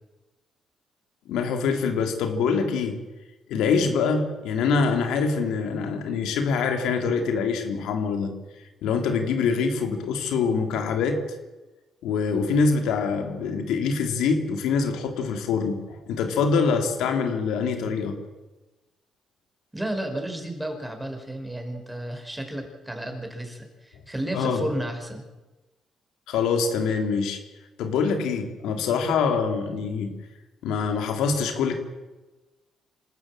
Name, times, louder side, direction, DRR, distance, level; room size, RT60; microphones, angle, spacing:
voice 1, 1.3-3.0 3.5-8.3 8.8-11.3 12.0-18.2 24.3-24.6 26.3-27.4 27.8-30.1 30.6-31.8, left 5 dB, 90° left, 5 dB, 3.0 m, -24 dB
voice 2, 19.7-25.2, right 1 dB, 10° right, 4 dB, 5.5 m, -32 dB
27.0 x 13.0 x 8.8 m, 1.1 s
cardioid pair, 90°, 0 cm